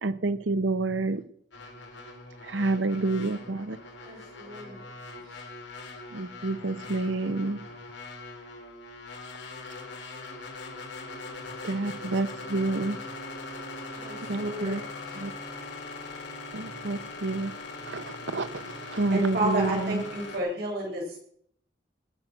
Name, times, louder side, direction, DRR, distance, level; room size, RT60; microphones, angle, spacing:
voice 1, 0.0-1.2 2.5-3.8 6.1-7.6 11.6-13.0 14.3-14.8 15.1-15.3 16.5-17.5 17.9-20.0, right 2 dB, 80° right, 12 dB, 1.0 m, -28 dB
sound 1, 1.5-20.4, left 3 dB, 70° left, 3.8 m, -41 dB
voice 2, 4.0-4.8 5.3-5.4 13.9-15.2, left 1 dB, 40° right, -6 dB, 5.6 m, -41 dB
voice 3, 19.1-21.2, right 1 dB, 60° right, -1 dB, 7.6 m, -29 dB
19.5 x 9.2 x 6.2 m, 0.66 s
head